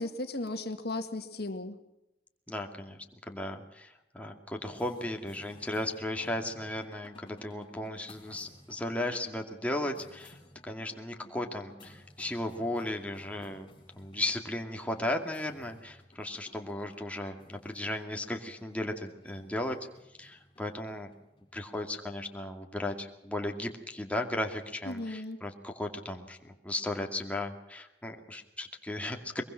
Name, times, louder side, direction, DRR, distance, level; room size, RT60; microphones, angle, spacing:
voice 1, 0.0-1.8 24.9-25.4, left 2 dB, 65° left, 7 dB, 2.0 m, -35 dB
voice 2, 2.5-10.4 10.7-13.7 14.0-19.8 20.2-21.1 21.5-29.4, left 1 dB, 10° left, 2 dB, 2.3 m, -36 dB
sound 1, 4.6-23.3, left 1 dB, 30° left, 7.0 m, -57 dB
23.0 x 22.5 x 5.9 m, 0.87 s
head